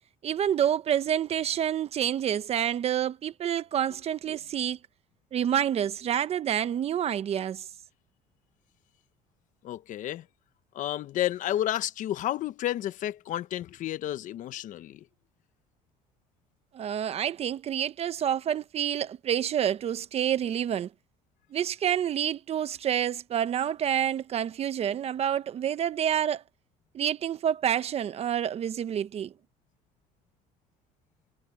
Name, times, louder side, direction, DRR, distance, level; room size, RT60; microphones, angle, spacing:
voice 1, 0.2-4.8 5.3-7.7 16.7-20.9 21.5-26.4 26.9-29.3, right 9 dB, 40° right, 0.9 m, -28 dB
voice 2, 9.6-10.3 10.7-15.0, left 13 dB, 55° left, 1.1 m, -31 dB
cardioid pair, 120°, 15 cm